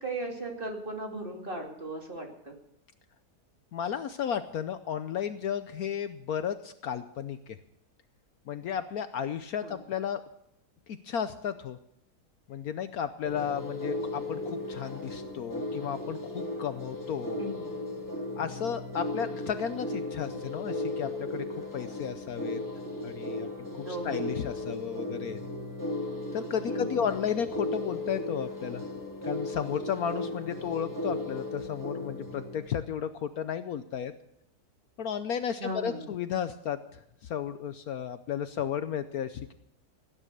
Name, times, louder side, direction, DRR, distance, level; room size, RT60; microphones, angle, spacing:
voice 1, 0.0-2.6 9.6-9.8 17.4-17.7 23.8-24.3 26.7-27.1 35.6-36.1, right 1 dB, 30° right, 1 dB, 2.7 m, -37 dB
voice 2, 3.7-7.6 8.5-10.2 10.9-11.8 12.5-17.4 18.4-22.6 23.0-25.4 26.3-28.8 29.2-34.1 35.0-39.5, left 8 dB, 65° left, 11 dB, 1.1 m, -33 dB
sound 1, 13.2-32.7, left 2 dB, 10° left, 2.4 m, -36 dB
17.5 x 10.0 x 6.5 m, 0.76 s
omnidirectional pair, 1.8 m